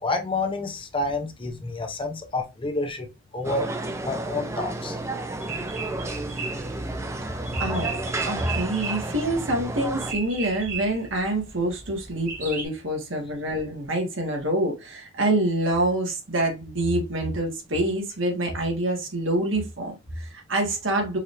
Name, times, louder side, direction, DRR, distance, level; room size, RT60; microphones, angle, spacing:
voice 1, 0.0-3.1 3.3-3.7 4.0-5.0, left 2 dB, 25° left, 0.7 m, -29 dB
sound 1, 3.4-10.1, right 2 dB, 15° right, 0.5 m, -32 dB
sound 2, 5.4-12.7, right 5 dB, 40° right, 1.9 m, -36 dB
voice 2, 7.6-8.0 8.2-21.2, right 1 dB, 70° right, 1.8 m, -26 dB
4.8 x 3.0 x 3.3 m
head